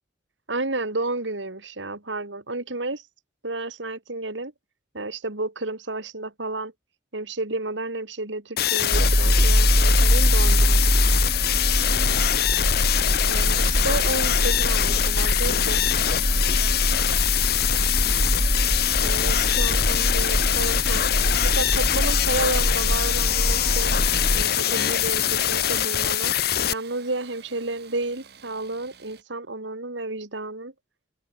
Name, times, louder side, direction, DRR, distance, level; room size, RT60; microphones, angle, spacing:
voice 1, 0.5-3.0 3.4-4.5 4.9-6.7 7.1-11.1 13.3-15.8 19.0-26.3 26.7-30.7, right 2 dB, 85° right, 3.2 m, -31 dB
sound 1, 8.6-26.7, left 11 dB, 55° left, 0.8 m, -23 dB
sound 2, 8.9-24.4, equal, 5° right, 0.4 m, -23 dB
Engine starting / Sawing, 23.5-29.2, right 7 dB, 60° right, 2.4 m, -44 dB
open air
head